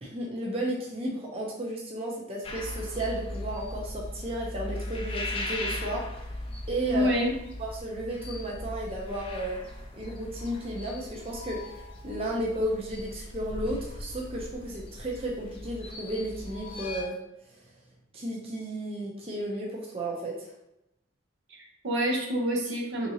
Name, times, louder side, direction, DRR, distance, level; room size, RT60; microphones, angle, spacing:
voice 1, 0.0-6.0 6.7-7.1 7.6-9.6 9.9-17.2 18.1-20.5, right 1 dB, 30° right, -3 dB, 0.6 m, -33 dB
sound 1, 2.4-17.0, left 1 dB, 30° left, 0.4 m, -38 dB
voice 2, 6.9-7.3 21.5-23.1, equal, 70° right, 1 dB, 0.7 m, -27 dB
3.6 x 2.8 x 2.8 m, 0.84 s
head